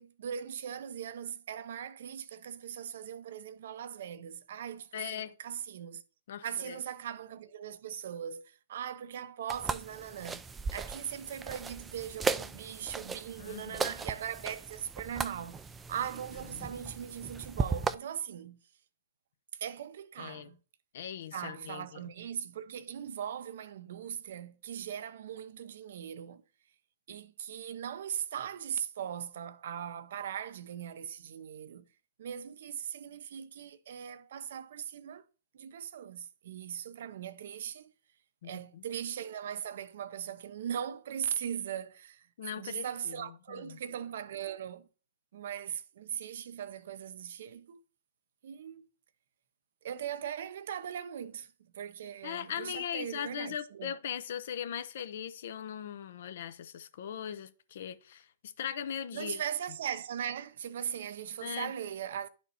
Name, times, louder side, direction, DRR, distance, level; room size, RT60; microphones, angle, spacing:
voice 1, 0.0-6.0 6.4-15.6 15.9-18.6 19.5-20.6 21.3-26.4 27.1-31.9 32.2-35.2 35.5-37.9 38.4-42.3 42.6-44.9 45.3-47.8 48.4-48.8 49.8-53.9 59.1-62.3, right 9 dB, 65° right, 0.6 m, -39 dB
voice 2, 4.9-5.3 6.3-6.8 13.4-13.9 20.2-20.5 20.9-21.8 38.4-38.8 42.4-43.1 43.5-43.8 52.2-59.4 61.4-61.7, left 9 dB, 65° left, 0.7 m, -39 dB
sound 1, 9.5-17.9, right 4 dB, 15° right, 0.4 m, -37 dB
11.0 x 4.3 x 2.8 m
hypercardioid pair, 125°, 0 cm